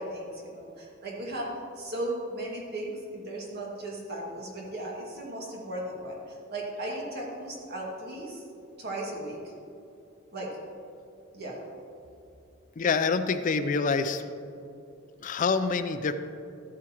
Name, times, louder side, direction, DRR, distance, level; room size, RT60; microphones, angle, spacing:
voice 1, 0.0-1.5 1.8-8.4 8.8-9.5 10.3-10.6 11.3-11.6, right 1 dB, 55° right, -3 dB, 2.0 m, -36 dB
voice 2, 12.8-14.2 15.2-16.1, left 4 dB, 40° left, 11 dB, 0.4 m, -26 dB
13.0 x 8.5 x 2.9 m, 2.7 s
head